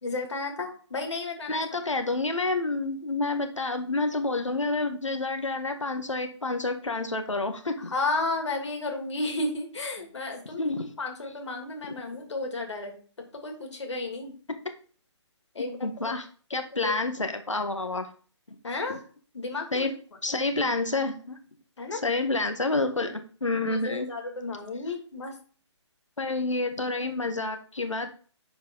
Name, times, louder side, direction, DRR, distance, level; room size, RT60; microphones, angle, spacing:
voice 1, 0.0-1.6 7.9-10.6 11.0-12.9 13.4-14.3 15.5-15.8 16.5-16.9 18.6-19.0 19.3-19.9 20.3-20.4 21.8-22.0 23.7-25.3, left 2 dB, 70° left, 3 dB, 2.9 m, -32 dB
voice 2, 1.5-7.9 10.6-10.9 11.8-11.9 15.6-18.1 18.9-19.0 19.7-19.9 20.2-21.4 21.9-24.1 26.2-28.2, left 3 dB, 90° left, 6 dB, 1.5 m, -29 dB
10.5 x 4.7 x 4.0 m, 0.42 s
figure-of-eight pair, 140°, 16 cm